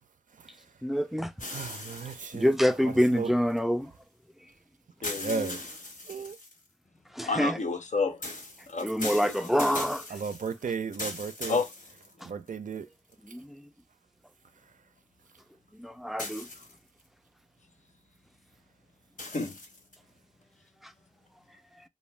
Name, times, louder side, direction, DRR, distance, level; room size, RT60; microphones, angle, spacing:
voice 1, 0.8-1.3 2.3-3.9 7.1-7.6 8.8-10.1 12.2-12.3 13.2-13.7 15.7-16.5 20.8-20.9, equal, ahead, 0.3 m, -26 dB
sound 1, 1.4-3.6 5.0-6.7 8.2-12.5 13.1-13.2 16.2-17.0 19.2-19.9, left 2 dB, 90° left, 0.9 m, -40 dB
voice 2, 1.5-2.5 2.8-3.3 5.2-5.6 6.1-6.4 10.1-11.6 12.2-12.9, right 5 dB, 85° right, 0.4 m, -35 dB
voice 3, 5.0-5.6 7.2-8.4 8.7-9.5 11.5-11.7 19.2-19.6, left 4 dB, 65° left, 0.5 m, -31 dB
2.5 x 2.1 x 3.1 m
wide cardioid pair, 75°, 13 cm